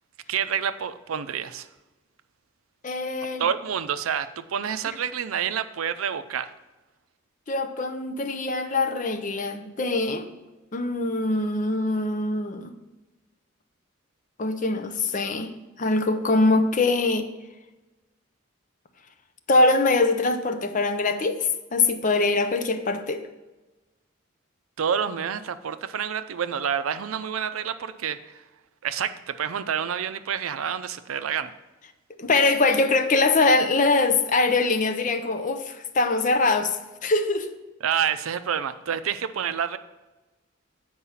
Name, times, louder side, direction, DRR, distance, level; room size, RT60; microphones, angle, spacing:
voice 1, 0.3-1.7 3.4-6.5 24.8-28.4 28.8-31.5 37.8-39.8, right 8 dB, 85° right, 12 dB, 0.5 m, -28 dB
voice 2, 2.8-3.5 7.5-10.3 10.7-12.7 14.4-15.5 15.8-17.3 19.5-23.3 32.2-37.5, left 3 dB, 40° left, 8 dB, 0.6 m, -23 dB
8.5 x 4.7 x 5.6 m, 1.1 s
head